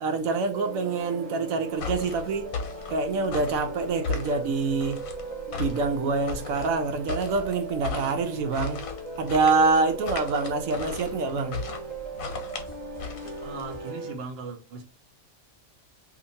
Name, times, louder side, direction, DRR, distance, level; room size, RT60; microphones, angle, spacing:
voice 1, 0.0-2.5 2.9-5.0 5.6-8.8 9.2-11.6, right 4 dB, 85° right, 1.0 m, -26 dB
sound 1, 0.5-14.1, right 2 dB, 30° right, 1.1 m, -38 dB
sound 2, 1.8-13.7, left 5 dB, 90° left, 1.2 m, -36 dB
voice 2, 13.4-14.8, right 4 dB, 55° right, 0.9 m, -38 dB
2.8 x 2.5 x 4.1 m
omnidirectional pair, 1.4 m